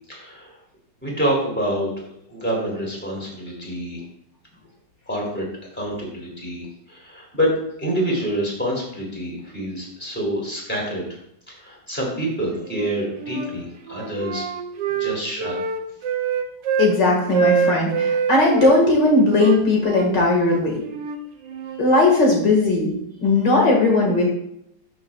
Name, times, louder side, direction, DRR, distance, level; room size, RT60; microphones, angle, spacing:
voice 1, 0.1-0.6 1.0-1.9 2.3-4.0 5.1-5.4 5.7-11.0 11.5-14.5 14.9-15.6, right 1 dB, 5° left, -3 dB, 3.0 m, -27 dB
Wind instrument woodwind instrument, 12.7-13.5 13.9-16.9 17.3-18.8 19.3-21.8, right 6 dB, 75° right, 1.4 m, -25 dB
voice 2, 16.8-20.9 21.8-24.2, left 2 dB, 70° left, -1 dB, 2.6 m, -18 dB
12.5 x 6.5 x 2.4 m, 0.75 s
omnidirectional pair, 2.0 m